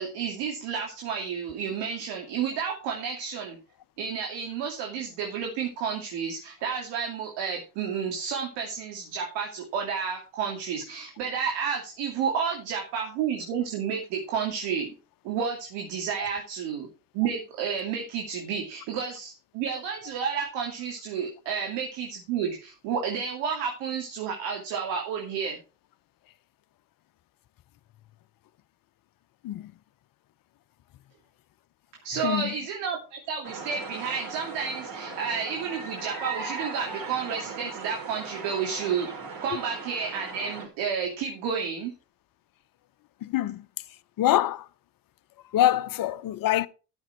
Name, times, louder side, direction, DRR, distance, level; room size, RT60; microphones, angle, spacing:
voice 1, 0.0-3.6 4.0-14.9 15.2-16.9 17.1-25.6 32.0-41.9, right 6 dB, 70° right, 2.9 m, -31 dB
voice 2, 32.2-32.5 43.2-43.6 44.2-44.7 45.5-46.7, left 13 dB, 50° left, 0.9 m, -24 dB
sound 1, 33.4-40.7, right 4 dB, 50° right, 5.1 m, -38 dB
13.0 x 7.1 x 4.5 m
hypercardioid pair, 65°, 44 cm